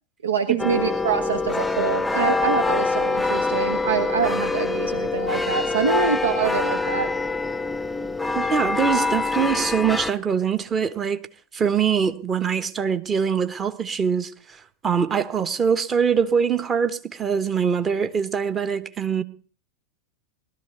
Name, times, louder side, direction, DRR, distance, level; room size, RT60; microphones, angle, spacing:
voice 1, 0.2-7.1, right 6 dB, 70° right, 1.1 m, -25 dB
sound 1, 0.6-10.1, left 3 dB, 5° left, 0.8 m, -25 dB
voice 2, 8.3-11.2 11.5-19.2, right 7 dB, 20° right, 1.2 m, -23 dB
19.5 x 13.0 x 4.0 m
figure-of-eight pair, 90°, 0 cm